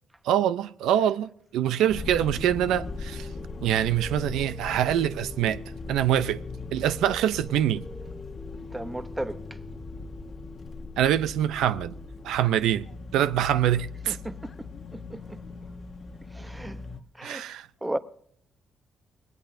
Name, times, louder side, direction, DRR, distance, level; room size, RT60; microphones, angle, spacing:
voice 1, 0.2-3.3 3.6-5.6 5.9-6.4 6.7-7.8 11.0-12.0 12.2-12.8 13.1-14.2 17.2-17.7, right 11 dB, 85° right, 0.5 m, -24 dB
sound 1, 1.9-17.0, left 4 dB, 45° left, 1.0 m, -40 dB
sound 2, 2.4-12.4, left 1 dB, 5° left, 1.1 m, -46 dB
voice 2, 8.7-9.4 14.1-14.7 14.9-15.4 16.3-16.8 17.2-17.4 17.8-18.0, right 1 dB, 10° right, 0.8 m, -34 dB
19.0 x 19.0 x 2.6 m
cardioid pair, 90°, 0 cm